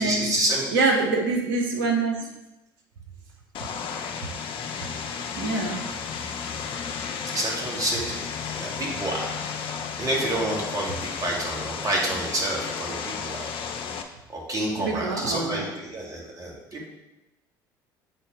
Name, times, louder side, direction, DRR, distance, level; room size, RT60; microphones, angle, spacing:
voice 1, 0.0-0.8 7.3-8.2 8.6-9.3 10.0-13.5 14.3-16.9, right 1 dB, 30° right, -3 dB, 2.4 m, -28 dB
voice 2, 0.7-2.3 5.3-5.9 14.8-15.7, right 3 dB, 75° right, 0 dB, 1.3 m, -25 dB
Vehicle, 3.5-14.0, left 6 dB, 50° left, 0.7 m, -33 dB
8.2 x 4.3 x 3.8 m, 0.99 s
figure-of-eight pair, 60°, 11 cm